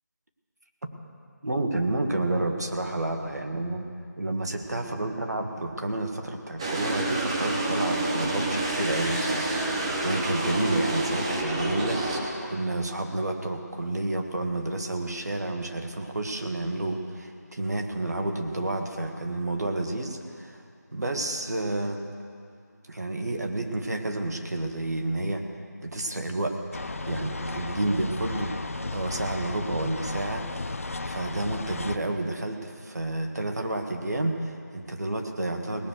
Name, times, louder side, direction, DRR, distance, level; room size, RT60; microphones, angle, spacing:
voice 1, 1.4-3.9 4.2-20.6 20.9-22.0 22.9-25.5 25.8-26.6 27.0-28.5 28.9-30.5 31.0-35.9, right 2 dB, 65° right, 4 dB, 1.7 m, -30 dB
sound 1, 6.6-12.2, right 2 dB, 20° right, 1.0 m, -28 dB
sound 2, 26.7-32.0, left 3 dB, 50° left, 0.7 m, -34 dB
18.5 x 6.5 x 8.0 m, 2.3 s
figure-of-eight pair, 165°, 10 cm